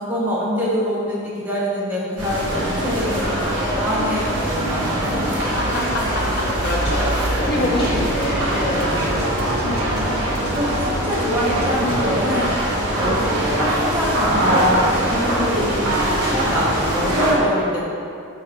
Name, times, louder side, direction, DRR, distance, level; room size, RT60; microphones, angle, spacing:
voice 1, 0.0-5.4 6.9-8.0 8.7-9.4 9.8-10.1 10.5-12.6 13.0-14.8 15.1-17.9, equal, 10° right, -7 dB, 1.0 m, -25 dB
sound 1, 2.2-17.3, right 1 dB, 60° right, 1.5 m, -22 dB
sound 2, 2.4-10.1, left 1 dB, 20° left, 1.0 m, -39 dB
voice 2, 5.3-10.2 15.3-15.7, left 1 dB, 50° left, -2 dB, 0.7 m, -28 dB
sound 3, 6.2-11.7, right 1 dB, 90° right, 0.6 m, -35 dB
5.5 x 4.0 x 4.3 m, 2.6 s
head